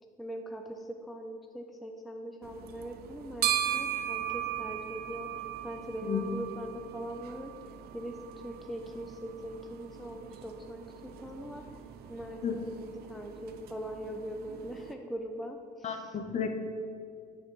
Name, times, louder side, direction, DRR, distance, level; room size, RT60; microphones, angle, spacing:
voice 1, 0.2-5.3 5.6-7.5 7.9-11.6 12.1-12.8 13.0-16.2, equal, ahead, 4 dB, 0.3 m, -41 dB
sound 1, 2.4-14.9, right 11 dB, 70° right, 0.4 m, -38 dB
voice 2, 15.8-16.5, left 7 dB, 40° left, 6 dB, 0.6 m, -32 dB
8.6 x 3.8 x 3.7 m, 2.3 s
cardioid pair, 110°, 17 cm